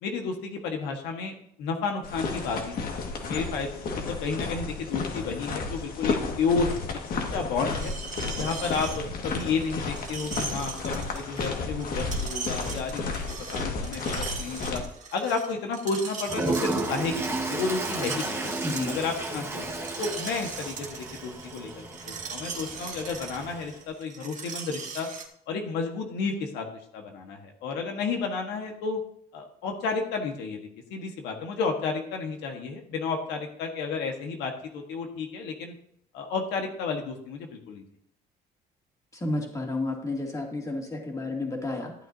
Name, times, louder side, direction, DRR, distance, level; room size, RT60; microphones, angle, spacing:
voice 1, 0.0-6.7 7.3-7.9 8.4-13.1 13.5-14.8 15.1-18.5 18.9-25.1 25.5-26.7 26.9-29.0 29.3-35.7 36.1-37.8, left 4 dB, 90° left, 3 dB, 1.5 m, -31 dB
sound 1, 2.0-14.8, left 4 dB, 60° left, 1.8 m, -32 dB
Screech, 7.6-25.2, right 5 dB, 45° right, 1.6 m, -40 dB
Toilet flush, 16.2-23.8, right 2 dB, 15° right, 1.3 m, -33 dB
voice 2, 18.6-19.0 39.1-41.9, left 2 dB, 20° left, 0 dB, 2.4 m, -31 dB
13.5 x 8.9 x 2.7 m, 0.70 s
cardioid pair, 110°, 17 cm